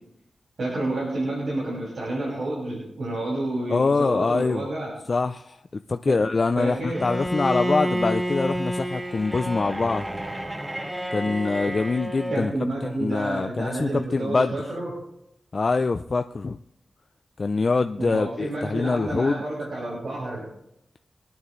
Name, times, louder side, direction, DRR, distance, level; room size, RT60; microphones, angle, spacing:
voice 1, 0.6-4.9 6.5-7.0 11.2-11.3 11.7-11.8 12.3-14.9 18.0-20.4, right 1 dB, 70° right, -6 dB, 6.1 m, -29 dB
voice 2, 3.7-4.7 5.1-10.0 11.1-12.5 12.8-14.6 15.5-16.6 17.4-19.4, left 3 dB, 50° left, 8 dB, 0.5 m, -24 dB
Bowed string instrument, 6.9-12.5, equal, 15° right, 1.1 m, -29 dB
25.0 x 9.4 x 3.2 m, 0.79 s
cardioid pair, 60°, 0 cm